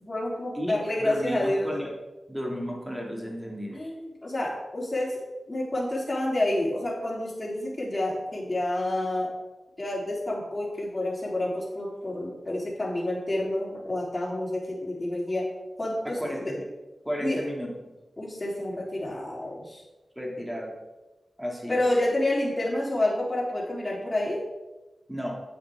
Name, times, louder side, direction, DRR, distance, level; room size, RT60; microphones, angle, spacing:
voice 1, 0.0-1.7 3.7-5.2 5.5-9.3 9.8-15.4 15.8-16.5 17.2-17.4 18.2-19.8 21.7-24.4, left 1 dB, 30° left, -4 dB, 3.4 m, -29 dB
voice 2, 0.5-1.9 2.3-3.8 16.0-16.7 17.0-17.7 20.2-20.8 21.4-21.8 25.1-25.3, equal, 5° right, -1 dB, 2.3 m, -33 dB
10.0 x 7.8 x 3.6 m, 1.1 s
cardioid pair, 65°, 0 cm